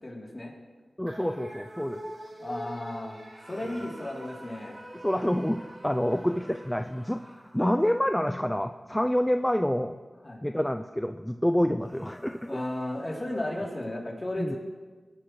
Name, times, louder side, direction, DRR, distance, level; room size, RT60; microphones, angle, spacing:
voice 1, 0.0-0.5 2.4-3.2 3.5-4.8 10.2-10.4 12.5-14.6, left 1 dB, 35° left, -2 dB, 3.2 m, -34 dB
voice 2, 1.0-2.0 5.0-10.0 10.4-12.6 14.4-14.6, equal, 10° left, 6 dB, 0.5 m, -27 dB
sound 1, 1.1-7.6, equal, 85° right, 3.4 m, -45 dB
sound 2, 3.3-8.1 11.8-13.8, equal, 15° right, 2.8 m, -52 dB
18.5 x 11.5 x 3.2 m, 1.4 s
wide cardioid pair, 55°, 0 cm